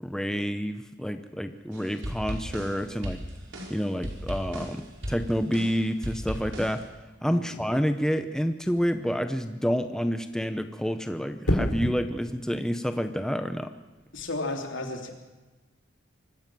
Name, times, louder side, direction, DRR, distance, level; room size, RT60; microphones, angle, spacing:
voice 1, 0.0-3.2 3.7-6.9 7.2-13.7, equal, 5° left, 8 dB, 0.8 m, -28 dB
sound 1, 1.7-6.8, equal, 75° right, 5.0 m, -37 dB
voice 2, 7.3-7.6 14.1-15.1, left 2 dB, 70° left, 3 dB, 3.3 m, -33 dB
sound 2, 11.4-12.0 14.0-14.2, equal, 85° left, 4.1 m, -27 dB
24.5 x 15.0 x 7.7 m, 1.2 s
head